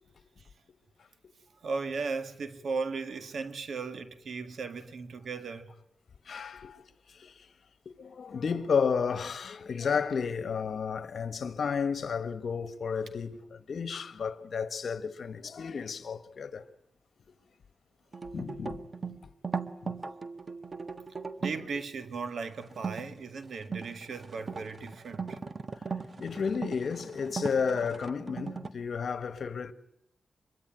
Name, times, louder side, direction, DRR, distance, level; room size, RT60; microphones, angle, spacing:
voice 1, 1.6-5.7 21.4-25.4, right 4 dB, 75° right, 2.0 m, -36 dB
voice 2, 6.3-6.9 7.2-7.3 8.0-16.6 18.3-18.8 19.1-19.2 19.8-19.9 26.2-29.7, left 6 dB, 70° left, 1.5 m, -32 dB
sound 1, 18.1-21.7 22.7-23.0 23.5-28.7, right 5 dB, 45° right, 1.5 m, -38 dB
25.0 x 22.5 x 9.2 m
cardioid pair, 80°, 0 cm